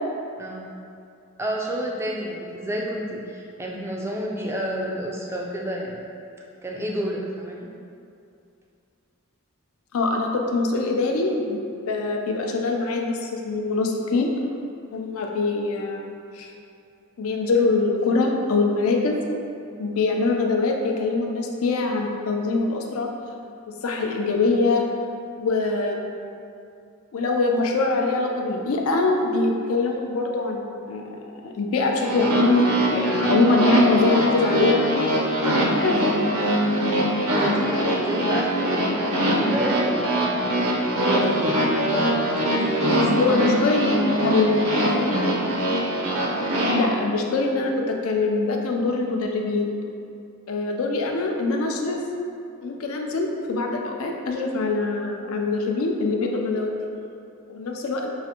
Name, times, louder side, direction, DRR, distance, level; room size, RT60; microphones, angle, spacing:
voice 1, 1.4-6.0 6.6-7.7 36.6-40.4 41.1-43.3, equal, 10° right, -2 dB, 0.3 m, -30 dB
voice 2, 9.9-14.3 14.9-16.0 16.3-16.5 17.2-19.1 19.8-23.1 23.7-24.8 25.4-26.0 27.1-31.0 31.4-34.9 35.6-36.1 43.1-44.6 46.7-49.7 50.5-52.0 52.6-56.8 57.5-58.1, left 3 dB, 70° left, 2 dB, 0.4 m, -23 dB
sound 1, 32.0-46.7, equal, 75° right, 0.7 m, -22 dB
5.6 x 2.5 x 2.8 m, 2.5 s
head